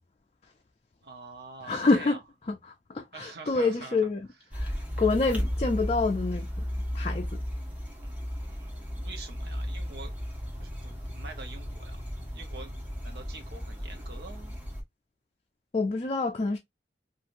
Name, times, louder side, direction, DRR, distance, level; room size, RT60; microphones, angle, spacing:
voice 1, 1.0-2.2 3.1-4.0 8.0-10.1 10.6-12.0 12.3-12.7 13.0-14.6, right 3 dB, 65° right, 0.9 m, -46 dB
voice 2, 1.6-2.2 2.5-2.6 2.9-4.3 4.5-4.7 5.0-6.5 6.9-7.4 15.7-16.6, left 3 dB, 35° left, 0.4 m, -27 dB
sound 1, 4.5-14.8, equal, 10° right, 0.9 m, -35 dB
3.1 x 2.5 x 2.5 m
head